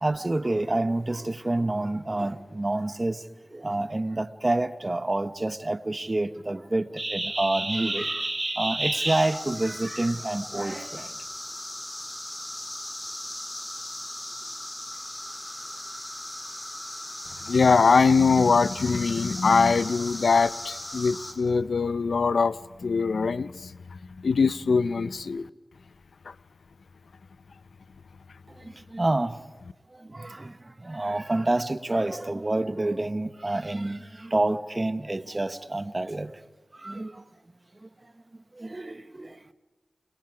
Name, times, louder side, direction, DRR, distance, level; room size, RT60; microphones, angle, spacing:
voice 1, 0.0-3.2 3.5-11.1 28.6-29.4 30.0-30.6 30.8-36.3 36.8-37.2 38.6-39.4, right 2 dB, 35° right, 1.2 m, -28 dB
sound 1, 9.1-21.3, left 1 dB, 25° left, 4.1 m, -38 dB
voice 2, 17.4-25.5 26.3-26.4, left 4 dB, 85° left, 0.6 m, -22 dB
29.5 x 23.5 x 5.0 m
cardioid pair, 45°, 0 cm